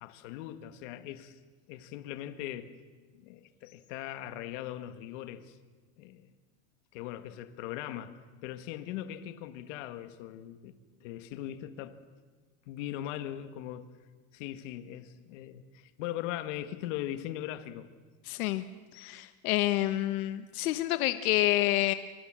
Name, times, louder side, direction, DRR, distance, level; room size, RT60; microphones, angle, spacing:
voice 1, 0.0-1.4 1.7-2.8 3.1-5.6 6.0-6.3 6.9-10.7 11.0-12.0 12.7-14.0 14.3-17.9, left 12 dB, 55° left, 1.8 m, -40 dB
voice 2, 18.3-18.6 18.9-21.9, left 16 dB, 85° left, 1.3 m, -28 dB
26.0 x 24.5 x 7.6 m
supercardioid pair, 175°, 42 cm